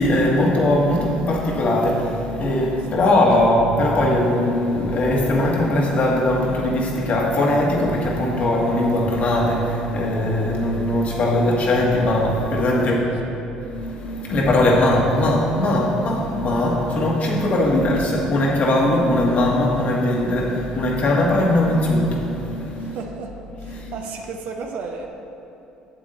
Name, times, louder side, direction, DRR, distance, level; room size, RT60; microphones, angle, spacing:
voice 1, 0.0-13.0 13.7-23.0 23.7-23.9, left 1 dB, 55° left, -2 dB, 1.7 m, -20 dB
voice 2, 12.7-13.4 22.8-23.3 23.6-25.1, right 4 dB, 70° right, 2 dB, 0.8 m, -34 dB
8.5 x 7.3 x 4.0 m, 2.9 s
supercardioid pair, 75°, 3 cm